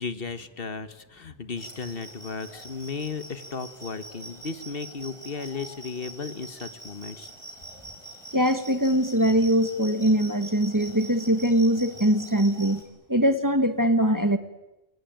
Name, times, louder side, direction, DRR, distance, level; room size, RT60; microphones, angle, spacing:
voice 1, 0.0-7.3, left 5 dB, 60° left, 12 dB, 1.5 m, -35 dB
sound 1, 1.6-12.8, right 2 dB, 30° left, 5.0 m, -44 dB
voice 2, 8.3-12.8 13.1-14.4, equal, 20° right, 9 dB, 1.6 m, -22 dB
28.0 x 23.0 x 9.1 m, 1.0 s
omnidirectional pair, 1.1 m